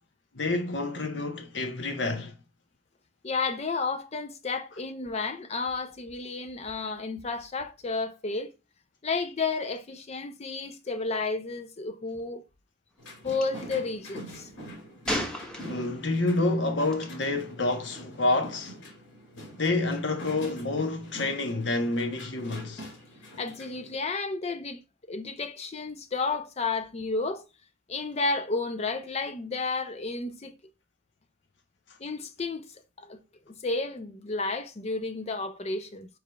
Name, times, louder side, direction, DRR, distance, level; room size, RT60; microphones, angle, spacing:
voice 1, 0.3-2.3 15.6-18.8 19.6-22.8, left 2 dB, 65° left, 1.0 m, -28 dB
voice 2, 3.2-8.5 9.0-12.4 13.2-14.5 23.4-24.8 25.1-27.4 27.9-30.5 32.0-32.6 33.0-33.2 33.5-36.1, left 3 dB, 35° left, 0.5 m, -32 dB
sound 1, 13.0-24.0, equal, 85° left, 2.4 m, -45 dB
Gunshot gunfire, 13.3-13.5 15.1-16.1 16.9-17.1, equal, 5° left, 1.0 m, -32 dB
4.8 x 4.7 x 2.3 m
head